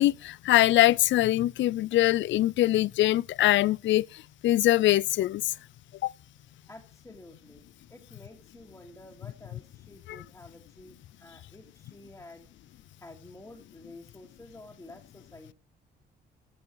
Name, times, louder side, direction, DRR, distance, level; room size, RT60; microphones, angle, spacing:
voice 1, 0.0-4.1 4.4-5.4 6.0-6.1 10.1-10.2, left 15 dB, 70° left, 0.5 m, -23 dB
voice 2, 6.7-12.5 13.0-15.5, left 2 dB, 10° left, 2.3 m, -50 dB
15.5 x 6.1 x 4.7 m
cardioid pair, 90°, 20 cm